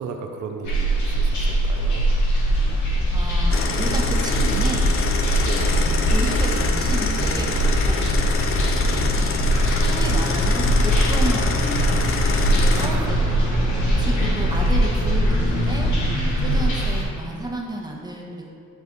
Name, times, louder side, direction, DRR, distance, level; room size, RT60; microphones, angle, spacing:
voice 1, 0.0-2.0 5.4-5.7 8.6-9.0 12.7-13.6 16.4-16.8, right 5 dB, 75° right, 4 dB, 0.6 m, -35 dB
sound 1, 0.6-17.0, right 1 dB, 70° left, 1.5 m, -21 dB
sound 2, 2.5-15.9, equal, 20° left, 1.1 m, -31 dB
voice 2, 3.1-4.9 5.6-8.1 8.9-9.6 9.8-12.1 12.5-13.0 13.9-15.9 16.2-18.4, right 1 dB, 15° right, -1 dB, 1.1 m, -31 dB
sound 3, 3.5-12.9, left 6 dB, 45° left, 0.6 m, -27 dB
10.0 x 3.3 x 4.0 m, 2.4 s
cardioid pair, 90°, 30 cm